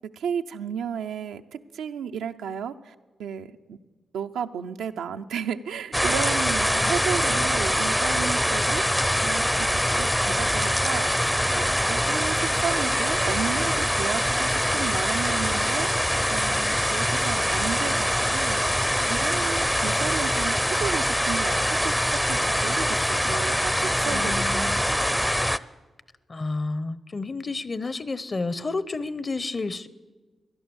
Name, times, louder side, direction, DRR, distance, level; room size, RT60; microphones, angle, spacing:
voice 1, 0.1-2.9 3.2-3.8 4.1-8.9 9.2-18.6 19.0-25.1, right 7 dB, 85° right, 6 dB, 0.5 m, -33 dB
sound 1, 5.9-25.6, equal, 5° left, 0.5 m, -24 dB
voice 2, 24.0-24.8 26.3-29.9, left 3 dB, 45° left, 17 dB, 0.8 m, -31 dB
17.5 x 11.5 x 7.0 m, 1.3 s
supercardioid pair, 40°, 0 cm